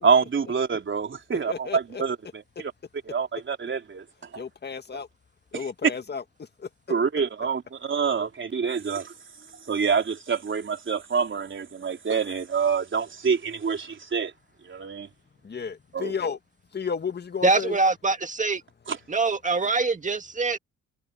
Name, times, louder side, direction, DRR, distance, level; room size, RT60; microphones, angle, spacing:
voice 1, 0.0-2.7 3.1-4.0 4.3-4.4 5.5-5.7 6.9-9.1 9.7-14.3 14.6-15.1 15.9-16.1 18.9-19.0, right 6 dB, 40° right, 3.9 m, -26 dB
voice 2, 1.5-2.0 4.4-5.1 5.5-6.2 6.6-6.7 15.4-16.4 16.7-17.8, left 6 dB, 35° left, 1.9 m, -32 dB
voice 3, 17.4-18.6 19.1-20.6, right 3 dB, 25° right, 2.0 m, -24 dB
cardioid pair, 90°, 30 cm